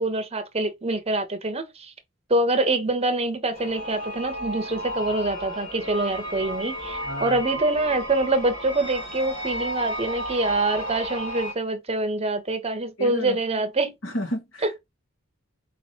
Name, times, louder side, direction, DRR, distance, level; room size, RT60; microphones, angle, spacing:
voice 1, 0.0-1.9 2.3-13.9 14.6-14.7, right 2 dB, 30° right, 0.9 m, -25 dB
sound 1, 3.5-11.5, equal, 40° left, 1.8 m, -33 dB
voice 2, 7.0-7.4 13.0-13.4 14.0-14.8, equal, 75° left, 1.8 m, -31 dB
4.9 x 3.1 x 2.8 m
head